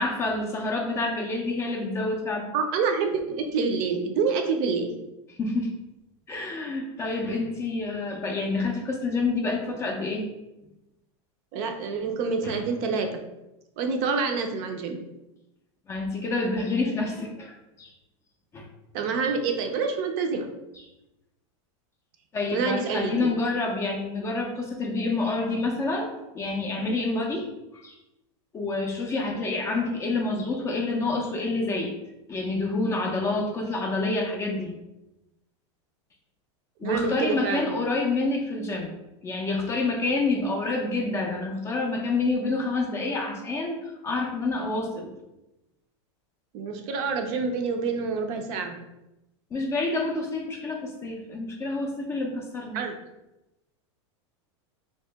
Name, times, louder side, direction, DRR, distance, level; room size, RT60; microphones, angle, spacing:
voice 1, 0.0-2.5 5.4-5.7 6.3-10.2 12.4-12.5 15.9-17.9 18.5-18.7 22.3-26.1 26.3-27.5 27.7-27.9 28.5-31.9 32.3-34.7 36.8-38.9 39.2-45.1 49.5-52.8, left 3 dB, 20° left, 2 dB, 0.4 m, -28 dB
voice 2, 2.5-4.9 11.5-13.2 13.8-15.0 18.9-20.5 22.5-23.3 36.8-37.7 46.5-48.8 52.7-52.9, right 5 dB, 45° right, 5 dB, 0.4 m, -27 dB
2.9 x 2.8 x 3.3 m, 0.94 s
supercardioid pair, 150°, 15 cm